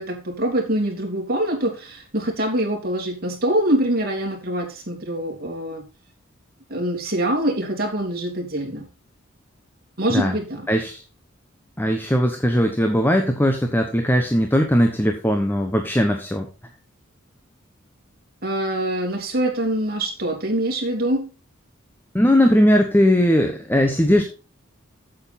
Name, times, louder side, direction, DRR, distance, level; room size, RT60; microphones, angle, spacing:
voice 1, 0.0-5.8 6.7-8.9 10.0-10.7 18.4-21.3, right 1 dB, 50° right, 1 dB, 3.0 m, -24 dB
voice 2, 10.7-11.0 11.8-16.5 22.1-24.2, equal, 10° left, 5 dB, 1.0 m, -19 dB
8.5 x 7.8 x 4.2 m, 0.33 s
head